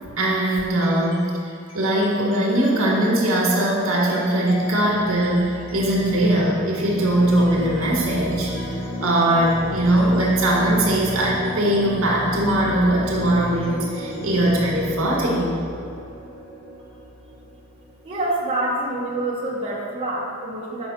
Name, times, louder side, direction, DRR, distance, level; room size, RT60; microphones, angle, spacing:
voice 1, 0.2-1.4 1.7-15.5, right 1 dB, 80° right, -3 dB, 1.7 m, -20 dB
sound 1, 0.7-1.3 1.6-18.2, equal, 65° left, 1.7 m, -33 dB
voice 2, 18.0-20.9, right 1 dB, 25° right, -6 dB, 1.0 m, -26 dB
6.9 x 5.2 x 4.3 m, 2.4 s
head